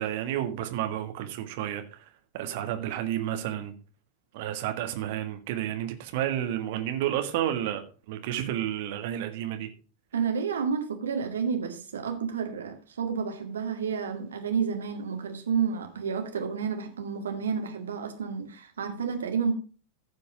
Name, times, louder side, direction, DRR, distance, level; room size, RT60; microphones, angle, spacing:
voice 1, 0.0-2.0 2.3-3.7 4.3-7.8 8.1-9.7, right 11 dB, 50° right, 1.7 m, -31 dB
voice 2, 10.1-19.5, right 6 dB, 65° right, 2.1 m, -30 dB
15.0 x 5.3 x 5.1 m
figure-of-eight pair, 90°, 0 cm